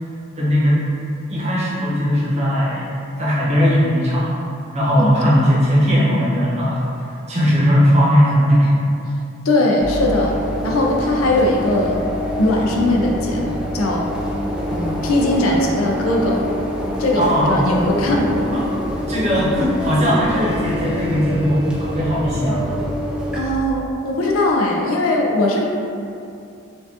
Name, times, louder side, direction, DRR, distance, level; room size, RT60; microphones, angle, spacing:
voice 1, 0.4-0.8 1.3-2.9 3.2-4.5 4.7-8.7 17.1-17.5 18.5-18.7 19.1-22.7, equal, 30° right, -7 dB, 0.8 m, -18 dB
voice 2, 5.0-5.4 9.4-10.4 10.6-12.0 12.4-14.1 14.7-16.4 17.0-18.5 23.4-25.6, left 1 dB, 70° left, 0 dB, 0.5 m, -19 dB
sound 1, 9.8-23.4, equal, 5° right, 0.3 m, -25 dB
4.5 x 2.5 x 2.7 m, 2.6 s
head